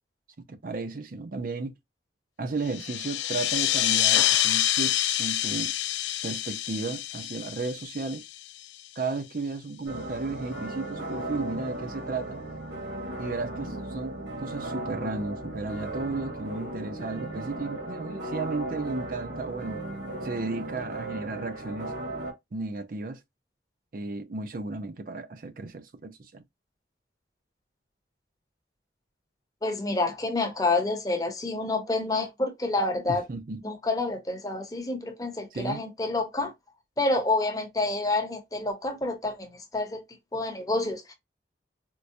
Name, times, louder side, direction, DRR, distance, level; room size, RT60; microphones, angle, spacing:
voice 1, 0.5-1.8 2.4-5.7 6.2-8.2 9.0-12.4 13.2-19.8 20.2-21.9 22.5-23.2 23.9-26.4 33.1-33.6 35.5-35.8, right 3 dB, 50° right, 0.5 m, -34 dB
sound 1, 2.7-8.8, left 13 dB, 85° left, 0.4 m, -27 dB
sound 2, 9.9-22.3, right 1 dB, 85° right, 2.0 m, -36 dB
voice 2, 29.6-33.3 33.6-36.5 37.0-40.0 40.3-41.1, left 2 dB, 20° left, 0.8 m, -28 dB
4.5 x 2.1 x 2.6 m
head